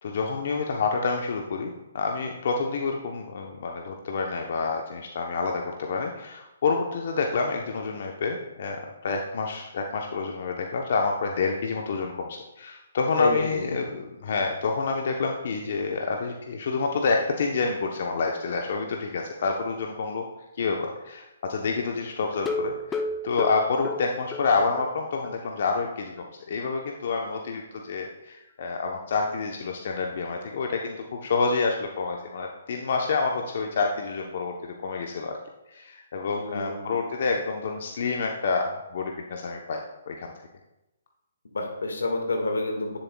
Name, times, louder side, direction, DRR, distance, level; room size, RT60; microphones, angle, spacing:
voice 1, 0.0-20.2 20.6-35.4 35.7-39.8 40.1-40.3, left 4 dB, 60° left, 2 dB, 0.7 m, -28 dB
voice 2, 13.2-13.8 36.3-37.0 41.5-43.0, left 2 dB, 85° left, 3 dB, 1.5 m, -28 dB
sound 1, 22.3-24.9 25.2-25.3 25.7-25.8 26.2-26.3, left 2 dB, 15° left, 0.5 m, -32 dB
9.9 x 7.2 x 2.2 m, 0.97 s
hypercardioid pair, 145°, 0 cm